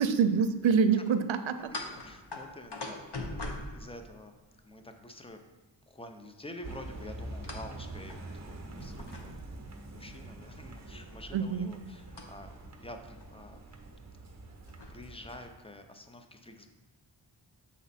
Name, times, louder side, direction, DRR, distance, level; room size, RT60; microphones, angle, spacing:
voice 1, 0.0-1.7 11.3-11.7, right 6 dB, 80° right, 10 dB, 0.6 m, -26 dB
sound 1, 1.6-4.6 7.4-7.7 8.1-8.2 8.8-9.6 12.1-12.2 13.2-13.3 13.6-13.8 14.4-15.0, left 2 dB, 60° left, 1.0 m, -41 dB
voice 2, 1.6-4.3 4.6-5.4 5.9-13.6 14.9-16.7, left 1 dB, 15° left, 6 dB, 0.5 m, -48 dB
sound 2, 6.6-15.6, right 2 dB, 35° right, 0.8 m, -45 dB
7.0 x 4.2 x 4.2 m, 1.2 s
wide cardioid pair, 95°, 46 cm